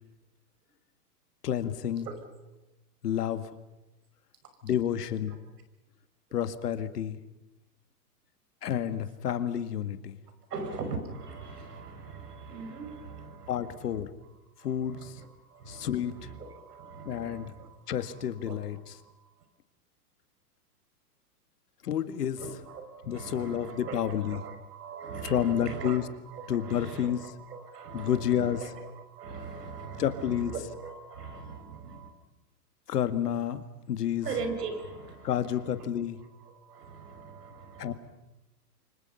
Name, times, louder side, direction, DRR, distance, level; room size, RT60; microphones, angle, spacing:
voice 1, 1.4-2.1 3.0-3.5 4.6-5.3 6.3-7.2 8.6-10.2 13.5-14.1 14.6-15.2 15.7-16.3 17.1-17.5 17.9-18.8 21.8-22.4 23.1-24.4 25.2-26.0 26.5-27.2 27.9-28.6 30.0-30.5 32.9-34.3 35.2-36.2 37.8-37.9, left 10 dB, 75° left, 11 dB, 2.0 m, -30 dB
voice 2, 10.5-14.3 14.6-19.3 22.4-26.0 26.2-32.1 34.2-35.8 36.1-37.9, right 4 dB, 80° right, 6 dB, 5.9 m, -41 dB
29.5 x 25.0 x 5.7 m, 0.98 s
hypercardioid pair, 135°, 47 cm